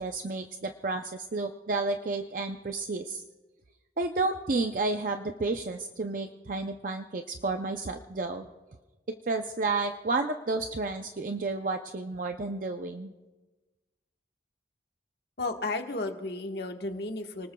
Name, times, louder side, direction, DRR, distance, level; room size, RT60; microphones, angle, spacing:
voice 1, 0.0-3.2 4.0-8.5 9.1-13.1, right 3 dB, 45° right, 5 dB, 0.5 m, -31 dB
voice 2, 15.4-17.5, left 2 dB, 60° left, 4 dB, 1.4 m, -33 dB
29.5 x 19.5 x 2.3 m, 1.2 s
head